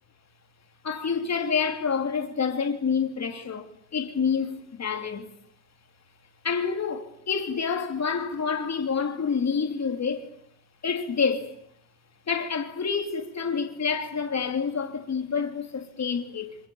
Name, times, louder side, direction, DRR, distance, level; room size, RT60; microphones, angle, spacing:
voice 1, 0.8-5.3 6.4-10.3 10.8-11.5 12.3-16.6, left 6 dB, 35° left, 3.1 m, -28 dB
27.0 x 25.5 x 7.1 m
wide cardioid pair, 155°, 44 cm